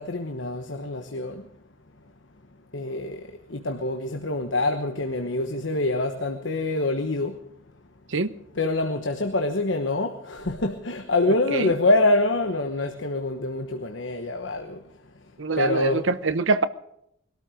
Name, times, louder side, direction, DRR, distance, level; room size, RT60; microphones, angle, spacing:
voice 1, 0.0-1.4 2.7-3.2 3.5-7.3 8.6-14.8 15.6-16.0, left 2 dB, 65° left, 1.2 m, -25 dB
voice 2, 15.4-16.6, right 3 dB, 70° right, 0.9 m, -24 dB
22.0 x 13.0 x 5.1 m
head